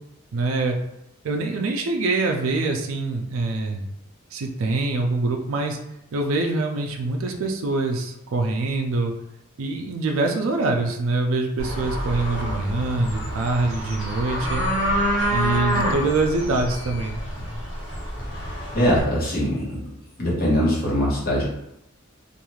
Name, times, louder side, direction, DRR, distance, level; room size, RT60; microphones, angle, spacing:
voice 1, 0.3-0.8 1.2-3.9 4.3-5.8 6.1-9.1 9.6-14.6 15.3-17.2, right 3 dB, 75° right, 3 dB, 0.4 m, -24 dB
sound 1, 11.6-19.0, equal, 70° left, 1.3 m, -27 dB
voice 2, 18.4-19.8 20.2-21.5, equal, 45° left, -5 dB, 1.0 m, -22 dB
2.5 x 2.3 x 3.1 m, 0.82 s
head